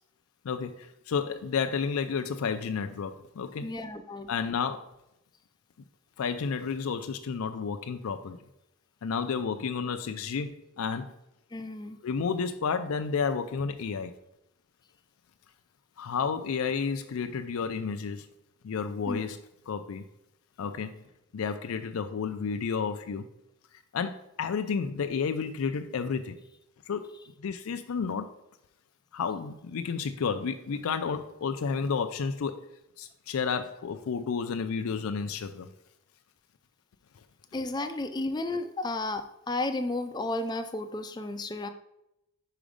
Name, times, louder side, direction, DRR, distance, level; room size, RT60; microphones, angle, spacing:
voice 1, 0.4-3.7 4.3-4.8 6.2-8.4 9.0-11.1 12.0-14.2 16.0-18.3 18.6-19.4 19.7-20.0 20.6-21.0 21.3-23.3 23.9-26.4 26.9-27.0 27.4-28.3 29.1-32.6 33.0-35.7, left 5 dB, 85° left, 8 dB, 0.4 m, -31 dB
voice 2, 3.6-4.3 11.5-12.0 19.1-19.2 37.5-41.7, left 2 dB, 20° left, 8 dB, 0.4 m, -33 dB
5.0 x 4.9 x 5.1 m, 0.85 s
head